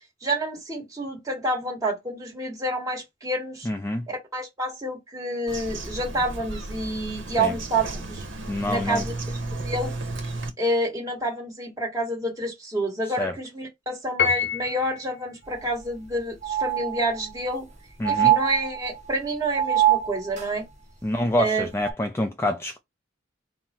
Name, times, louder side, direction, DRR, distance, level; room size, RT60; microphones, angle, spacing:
voice 1, 0.2-3.7 4.1-8.2 8.7-9.1 9.6-9.9 10.6-17.7 18.1-20.6 21.4-21.7, right 1 dB, 20° right, 1.3 m, -28 dB
voice 2, 3.7-4.1 7.4-7.5 8.5-9.0 13.2-13.3 18.0-18.3 21.0-22.8, left 1 dB, 15° left, 0.3 m, -26 dB
Bird vocalization bird call bird song, 5.5-10.5, right 2 dB, 70° right, 0.9 m, -34 dB
Piano, 14.2-15.1, left 7 dB, 60° left, 0.7 m, -25 dB
sound 1, 15.5-15.6 15.9-16.0 16.4-17.4 18.0-19.1 19.5-20.5 21.8-21.9, right 12 dB, 40° right, 1.2 m, -23 dB
3.7 x 2.0 x 4.2 m
head